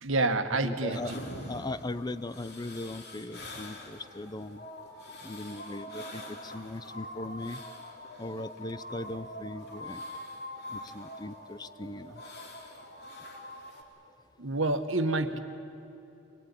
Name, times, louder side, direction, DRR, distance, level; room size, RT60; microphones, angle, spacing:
voice 1, 0.0-1.0 14.4-15.4, right 2 dB, 80° right, 8 dB, 1.5 m, -28 dB
voice 2, 0.6-1.2 1.5-4.6 5.2-7.6 8.2-10.0 10.7-12.2, left 2 dB, 20° left, 14 dB, 0.6 m, -39 dB
sound 1, 0.9-13.8, left 1 dB, 55° left, 3.3 m, -44 dB
24.5 x 20.0 x 9.8 m, 2.8 s
head